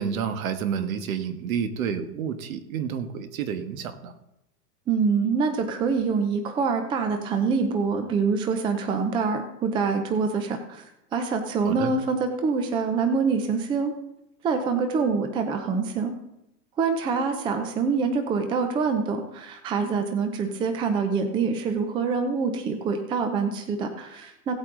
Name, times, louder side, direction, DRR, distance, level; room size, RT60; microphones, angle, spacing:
voice 1, 0.0-4.1 11.6-11.9, right 7 dB, 55° right, 9 dB, 1.6 m, -29 dB
voice 2, 4.9-10.9 11.1-13.9 14.4-16.1 16.8-24.6, right 5 dB, 10° right, 6 dB, 0.6 m, -25 dB
17.0 x 8.5 x 3.8 m, 0.86 s
hypercardioid pair, 140°, 48 cm